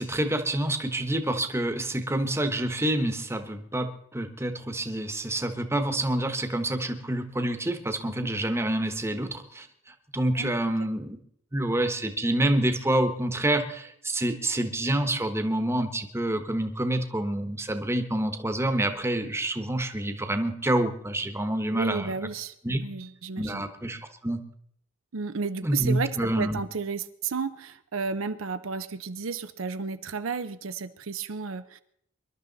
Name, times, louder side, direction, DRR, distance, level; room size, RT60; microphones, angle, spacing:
voice 1, 0.0-9.7 10.1-11.2 11.5-22.1 22.6-22.8 23.4-24.4 25.6-26.6, right 1 dB, 15° right, 8 dB, 1.2 m, -27 dB
voice 2, 21.7-23.6 25.1-31.8, right 5 dB, 80° right, 11 dB, 0.7 m, -33 dB
25.0 x 11.5 x 4.0 m, 0.69 s
head